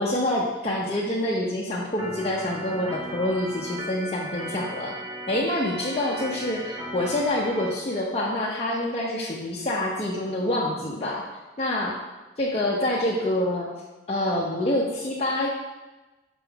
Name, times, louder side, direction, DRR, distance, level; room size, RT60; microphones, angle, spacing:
voice 1, 0.0-4.9 5.3-11.3 11.6-12.0 12.4-13.7 14.1-15.5, left 1 dB, 35° left, -5 dB, 0.6 m, -26 dB
Organ, 2.0-7.7, right 1 dB, 25° right, 1.0 m, -36 dB
6.0 x 3.7 x 4.5 m, 1.1 s
head